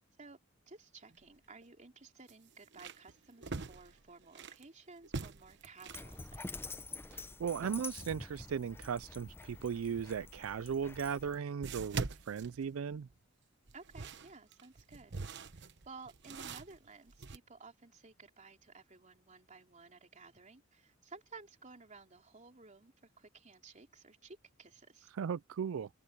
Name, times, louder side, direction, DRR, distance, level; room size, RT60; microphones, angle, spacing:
voice 1, 0.7-6.8 13.7-15.1 15.5-25.1, right 4 dB, 35° right, 3.2 m, -55 dB
sound 1, 1.1-1.2 1.6-1.7 2.3-4.6 5.0-6.1 10.4-10.5 11.6-13.2 13.7-17.4, right 4 dB, 60° right, 1.1 m, -43 dB
Dog, 5.9-11.4, left 3 dB, 10° left, 0.7 m, -47 dB
voice 2, 7.1-13.1 25.1-25.9, right 7 dB, 90° right, 0.4 m, -37 dB
head